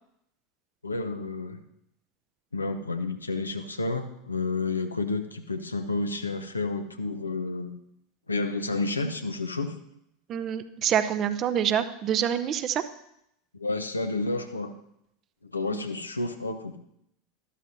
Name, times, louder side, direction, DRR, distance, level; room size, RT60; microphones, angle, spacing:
voice 1, 0.8-1.6 2.5-7.7 8.3-9.7 13.5-14.7 15.4-16.8, left 3 dB, 80° left, 7 dB, 0.8 m, -30 dB
voice 2, 10.3-12.8 15.7-15.8, right 9 dB, 35° right, 11 dB, 0.7 m, -26 dB
12.5 x 12.5 x 2.7 m, 0.77 s
figure-of-eight pair, 80°, 0 cm